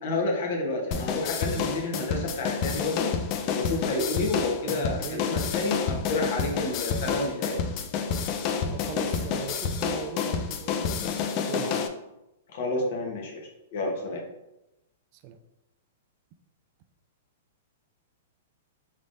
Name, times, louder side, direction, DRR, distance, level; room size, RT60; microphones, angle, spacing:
voice 1, 0.0-3.1 3.5-7.6 12.5-14.2, left 2 dB, 60° left, 1.1 m, -30 dB
sound 1, 0.9-11.9, left 6 dB, 40° left, 0.4 m, -29 dB
voice 2, 4.7-5.5 8.7-11.1 11.5-11.9 15.1-15.4, right 8 dB, 45° right, 0.3 m, -39 dB
3.7 x 3.4 x 2.6 m
hypercardioid pair, 125°, 0 cm